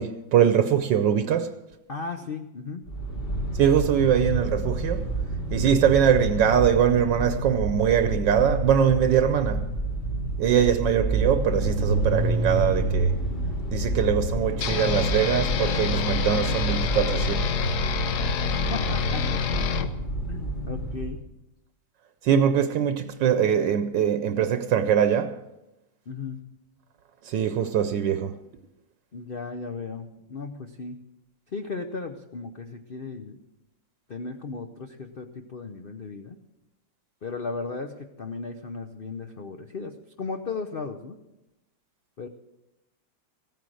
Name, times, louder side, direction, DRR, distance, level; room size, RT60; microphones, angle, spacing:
voice 1, 0.0-1.5 3.6-5.0 5.5-9.6 10.4-13.1 13.7-17.4 22.3-25.3 27.3-28.3, right 8 dB, 75° right, 1.4 m, -22 dB
voice 2, 1.9-2.8 18.7-19.4 20.3-21.2 26.1-26.4 29.1-31.0 31.5-33.4 34.1-36.4 37.2-41.2 42.2-42.3, left 4 dB, 90° left, 0.5 m, -36 dB
sound 1, 2.9-21.2, right 2 dB, 35° left, 1.3 m, -28 dB
sound 2, 14.6-19.9, left 8 dB, 65° left, 1.2 m, -28 dB
15.5 x 9.3 x 6.3 m
omnidirectional pair, 2.1 m